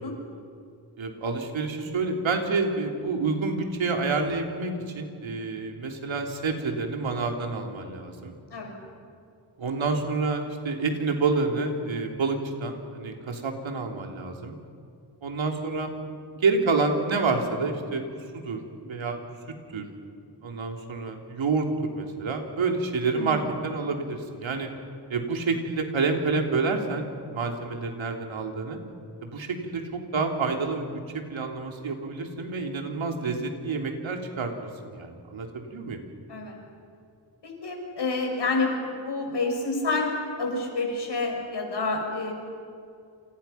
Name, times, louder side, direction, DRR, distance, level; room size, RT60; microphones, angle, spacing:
voice 1, 1.0-8.3 9.6-14.5 15.2-15.9 16.4-18.0 18.3-19.2 19.7-19.9 20.4-24.7 25.1-28.8 29.2-36.0, right 4 dB, 85° right, 3 dB, 3.4 m, -28 dB
voice 2, 37.4-40.1 40.4-42.3, left 3 dB, 60° left, 1 dB, 6.9 m, -28 dB
28.5 x 28.0 x 5.8 m, 2.4 s
wide cardioid pair, 125°, 46 cm